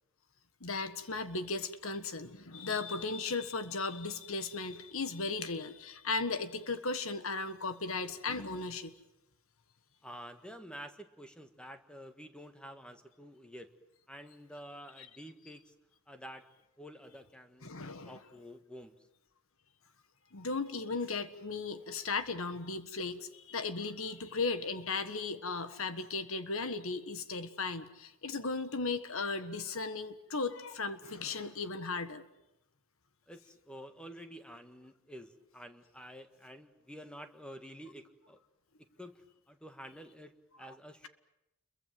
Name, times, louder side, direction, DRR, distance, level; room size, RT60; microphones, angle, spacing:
voice 1, 0.6-8.9 15.0-15.1 17.6-18.2 20.3-32.2, left 4 dB, 65° left, 11 dB, 1.5 m, -36 dB
voice 2, 10.0-13.7 14.1-15.7 16.1-16.4 16.8-18.9 33.3-38.4 38.8-41.1, equal, 5° left, 7 dB, 1.7 m, -49 dB
29.5 x 23.0 x 7.6 m, 0.91 s
head